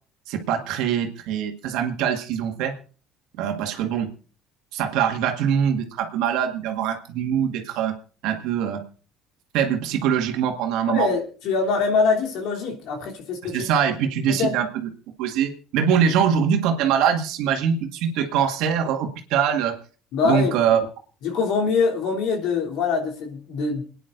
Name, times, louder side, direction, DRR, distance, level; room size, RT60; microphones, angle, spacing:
voice 1, 0.3-2.7 3.4-4.1 4.7-8.0 8.2-8.8 9.5-11.1 13.4-14.9 15.2-19.7 20.2-20.8, right 8 dB, 75° right, 5 dB, 1.8 m, -23 dB
voice 2, 10.9-13.7 14.3-14.5 20.1-20.6 21.2-23.8, left 4 dB, 70° left, 0 dB, 3.2 m, -23 dB
28.0 x 9.9 x 2.6 m, 0.38 s
supercardioid pair, 75°, 0 cm